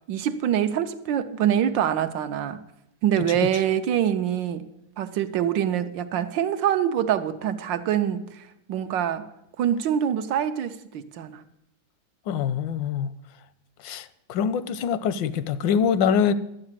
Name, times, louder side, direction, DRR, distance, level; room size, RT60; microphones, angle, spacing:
voice 1, 0.1-2.6 3.0-4.7 5.0-9.3 9.6-11.4, right 10 dB, 80° right, 1.5 m, -25 dB
voice 2, 12.3-13.1 13.8-16.3, left 7 dB, 85° left, 1.3 m, -24 dB
12.0 x 7.8 x 7.4 m
omnidirectional pair, 2.0 m